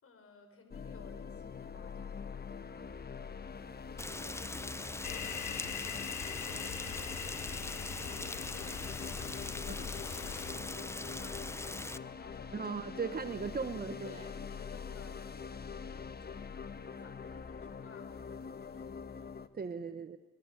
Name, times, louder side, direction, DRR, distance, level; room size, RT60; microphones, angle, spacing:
voice 1, 0.0-9.9 10.6-12.7 13.2-13.7 14.0-19.4, left 4 dB, 50° left, 6 dB, 5.3 m, -57 dB
sound 1, 0.7-19.5, left 6 dB, 30° left, 1.3 m, -44 dB
Rain, 4.0-12.0, left 2 dB, 10° left, 0.7 m, -42 dB
sound 2, 5.0-10.5, left 9 dB, 75° left, 2.0 m, -43 dB
voice 2, 12.5-14.2 19.5-20.2, right 5 dB, 30° right, 10 dB, 1.2 m, -38 dB
28.5 x 21.5 x 6.8 m, 1.2 s
cardioid pair, 90°, 30 cm